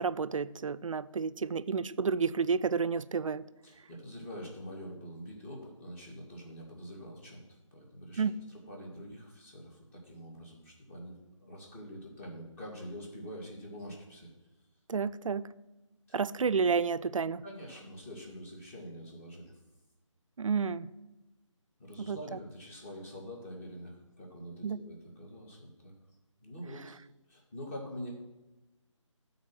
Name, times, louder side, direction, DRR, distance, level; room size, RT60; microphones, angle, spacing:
voice 1, 0.0-3.4 8.2-8.4 14.9-15.5 16.1-17.4 20.4-20.9 22.0-22.4 24.6-24.8, right 5 dB, 80° right, 15 dB, 0.4 m, -30 dB
voice 2, 3.6-7.4 7.7-8.2 8.5-14.3 16.1-16.2 17.4-19.5 21.8-25.9 26.4-27.0 27.3-28.1, equal, 25° left, -1 dB, 1.9 m, -45 dB
12.0 x 4.1 x 6.0 m, 1.1 s
figure-of-eight pair, 160°, 17 cm